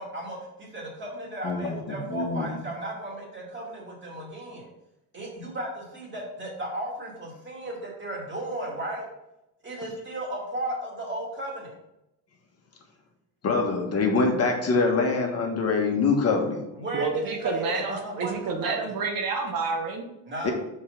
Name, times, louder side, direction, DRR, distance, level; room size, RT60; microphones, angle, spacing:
voice 1, 0.0-4.7 5.1-9.1 9.6-11.7 16.7-19.0 20.3-20.5, right 1 dB, 30° right, -2 dB, 2.3 m, -35 dB
voice 2, 1.4-2.5 13.4-16.6 20.4-20.5, left 4 dB, 40° left, 1 dB, 1.3 m, -24 dB
voice 3, 16.9-20.1, right 4 dB, 60° right, 3 dB, 1.1 m, -29 dB
5.4 x 4.7 x 5.2 m, 0.88 s
cardioid pair, 125°, 38 cm